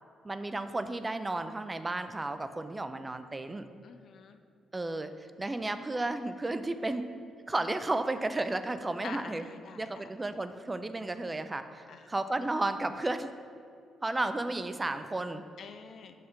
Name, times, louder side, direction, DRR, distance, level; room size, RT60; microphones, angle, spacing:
voice 1, 0.2-3.7 4.7-7.1 7.5-9.4 9.8-13.3 14.0-15.4, right 2 dB, 20° right, 10 dB, 0.4 m, -33 dB
voice 2, 3.8-4.4 7.6-7.7 9.0-10.1 11.9-12.1 15.6-16.1, left 6 dB, 60° left, 8 dB, 0.4 m, -46 dB
6.4 x 3.7 x 5.7 m, 2.4 s
cardioid pair, 100°, 0 cm